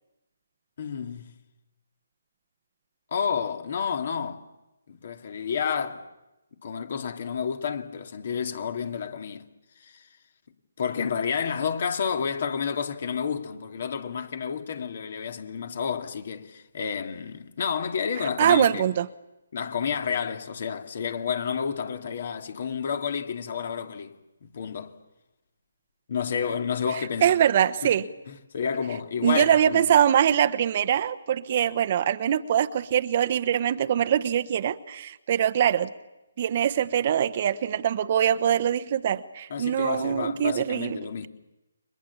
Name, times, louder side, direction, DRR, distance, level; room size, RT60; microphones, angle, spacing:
voice 1, 0.8-1.4 3.1-4.4 4.9-6.1 6.6-9.4 9.8-10.1 10.8-18.8 19.5-24.1 24.4-24.9 26.1-27.3 27.8-27.9 28.3-29.8 39.5-41.3, left 6 dB, 50° left, 2.7 m, -30 dB
voice 2, 18.4-19.1 27.2-28.1 29.2-35.9 36.4-41.3, right 9 dB, 40° right, 1.1 m, -23 dB
30.0 x 24.0 x 7.2 m
figure-of-eight pair, 150°, 0 cm